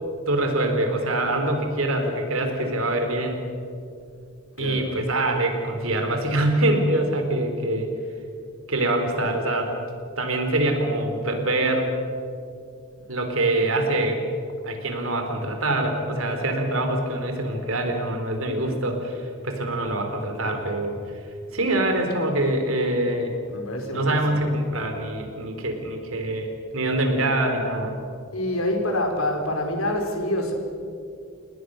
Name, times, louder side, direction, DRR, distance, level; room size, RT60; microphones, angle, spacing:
voice 1, 0.3-3.4 4.6-7.9 8.7-9.7 10.2-11.9 13.1-14.2 14.6-21.0 21.5-23.3 23.9-27.9, right 1 dB, 70° right, 5 dB, 3.8 m, -24 dB
voice 2, 4.5-5.0 23.5-24.5 28.3-30.5, left 1 dB, 75° left, 3 dB, 4.7 m, -27 dB
29.5 x 19.0 x 6.5 m, 2.4 s
head